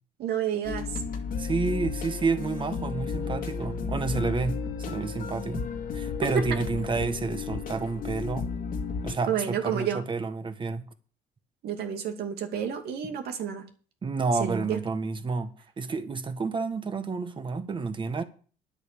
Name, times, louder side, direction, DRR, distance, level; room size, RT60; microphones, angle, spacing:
voice 1, 0.2-1.0 9.3-10.0 11.6-13.7 14.4-14.8, right 8 dB, 70° right, 2.6 m, -30 dB
sound 1, 0.6-9.2, left 5 dB, 55° left, 2.0 m, -33 dB
voice 2, 1.4-4.6 4.9-5.6 5.9-8.5 9.0-10.8 13.1-13.2 14.0-18.2, right 4 dB, 30° right, 1.6 m, -30 dB
10.5 x 8.1 x 7.0 m
cardioid pair, 110°, 17 cm